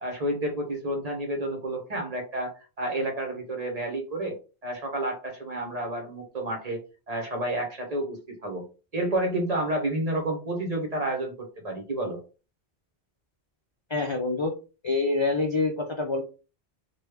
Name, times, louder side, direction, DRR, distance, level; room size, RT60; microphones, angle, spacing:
voice 1, 0.0-4.4 4.6-8.7 8.9-12.2, right 1 dB, 40° right, 2 dB, 0.9 m, -30 dB
voice 2, 13.9-14.5 14.8-16.2, left 3 dB, 50° left, 3 dB, 0.3 m, -26 dB
3.1 x 2.2 x 3.3 m, 0.33 s
omnidirectional pair, 1.1 m